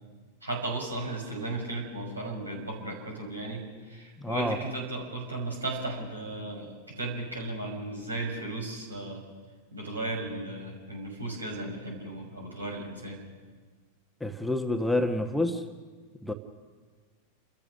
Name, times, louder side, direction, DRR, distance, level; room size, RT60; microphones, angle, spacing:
voice 1, 0.4-9.2 9.7-13.2, right 2 dB, 80° right, -1 dB, 5.9 m, -35 dB
voice 2, 4.2-4.6 14.2-15.6 16.2-16.3, left 1 dB, 5° left, 5 dB, 1.3 m, -28 dB
30.0 x 14.0 x 6.4 m, 1.5 s
figure-of-eight pair, 90°, 0 cm